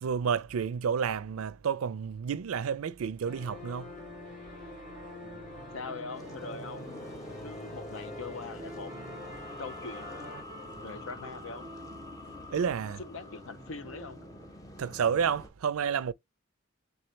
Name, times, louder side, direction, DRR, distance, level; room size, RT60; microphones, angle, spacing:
voice 1, 0.0-3.9 12.5-13.0 14.8-16.1, right 7 dB, 85° right, 0.4 m, -30 dB
sound 1, 3.2-10.4, left 2 dB, 40° left, 2.1 m, -45 dB
sound 2, 3.9-14.6, right 2 dB, 20° right, 0.4 m, -53 dB
voice 2, 5.7-7.1 7.4-8.9 9.6-10.4 10.8-11.7 13.0-14.3, left 4 dB, 65° left, 0.6 m, -42 dB
sound 3, 6.1-15.5, left 1 dB, 15° left, 0.7 m, -46 dB
4.0 x 3.7 x 3.2 m
head